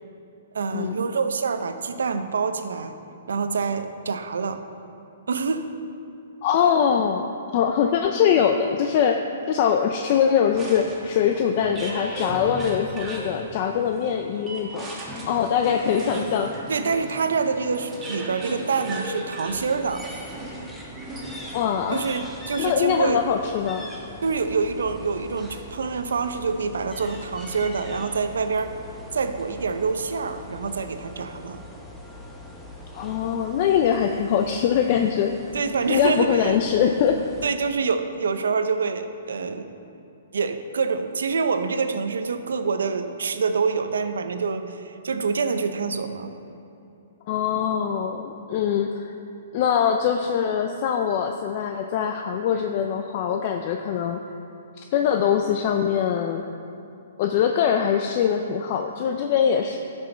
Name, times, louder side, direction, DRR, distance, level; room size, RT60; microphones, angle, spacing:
voice 1, 0.5-2.9 3.3-4.6 5.3-5.7 16.7-20.0 21.9-23.2 24.2-28.7 29.1-31.6 35.5-36.6 37.4-39.7 40.3-46.3, right 5 dB, 85° right, 8 dB, 0.6 m, -26 dB
voice 2, 6.4-7.3 7.5-9.2 9.5-14.9 15.3-16.5 21.5-22.1 22.6-23.9 32.9-35.4 35.9-37.2 47.3-49.1 49.5-54.2 54.8-56.4 57.2-59.8, left 8 dB, 40° left, 4 dB, 0.4 m, -22 dB
sound 1, 10.5-21.8, right 1 dB, 10° right, 1.4 m, -37 dB
sound 2, 19.5-37.5, left 1 dB, 5° left, 0.8 m, -42 dB
12.0 x 6.2 x 4.4 m, 2.8 s
hypercardioid pair, 155°, 0 cm